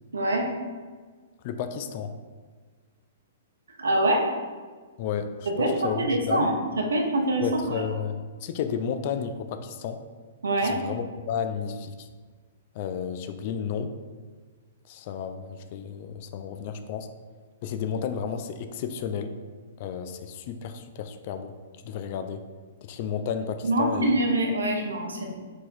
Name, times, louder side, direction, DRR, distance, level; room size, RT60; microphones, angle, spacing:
voice 1, 0.1-0.5 3.8-4.3 5.6-7.8 10.4-10.8 23.6-25.3, right 1 dB, 70° right, 1 dB, 0.7 m, -24 dB
voice 2, 1.4-2.1 5.0-6.5 7.4-10.0 10.6-12.1 12.7-13.9 14.9-17.1 17.6-19.3 19.8-21.5 21.8-22.4 22.8-24.1, left 7 dB, 45° left, 8 dB, 0.3 m, -32 dB
4.6 x 4.3 x 2.6 m, 1.5 s
figure-of-eight pair, 110°, 0 cm